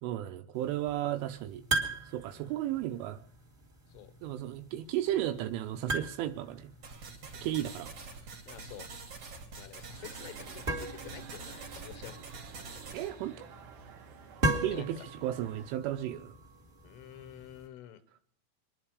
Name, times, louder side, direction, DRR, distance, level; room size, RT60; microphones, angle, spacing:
voice 1, 0.0-1.6 2.1-3.2 4.2-6.7 7.4-7.9 12.9-13.5 14.6-16.3, right 12 dB, 80° right, 3.2 m, -34 dB
sound 1, 0.5-17.7, right 2 dB, 15° right, 2.1 m, -40 dB
sound 2, 6.8-13.1, right 4 dB, 35° right, 3.2 m, -46 dB
voice 2, 8.5-8.9 9.6-12.2 14.7-15.0 16.8-18.0, left 12 dB, 85° left, 3.9 m, -48 dB
sound 3, 10.0-15.8, right 8 dB, 60° right, 2.4 m, -52 dB
26.5 x 11.0 x 4.8 m
omnidirectional pair, 5.7 m